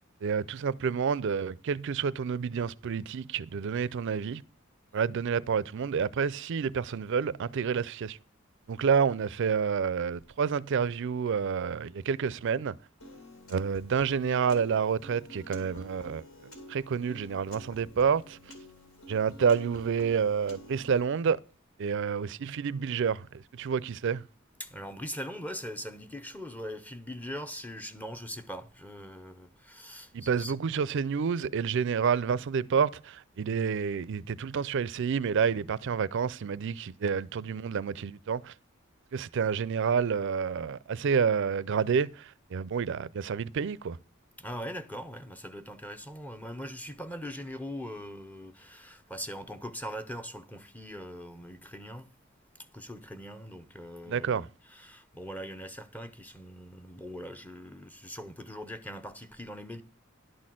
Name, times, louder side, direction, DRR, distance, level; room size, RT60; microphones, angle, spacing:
voice 1, 0.2-4.4 4.9-8.2 8.7-12.8 13.5-16.3 16.7-18.4 19.1-21.4 21.8-24.2 30.1-38.5 39.1-44.0 54.1-54.5, right 6 dB, 60° right, 0.4 m, -29 dB
Piano, 13.0-21.0, left 1 dB, 75° left, 2.4 m, -49 dB
voice 2, 24.6-30.5 44.4-52.1 52.7-59.8, equal, 10° left, 0.7 m, -41 dB
11.0 x 4.2 x 7.5 m
head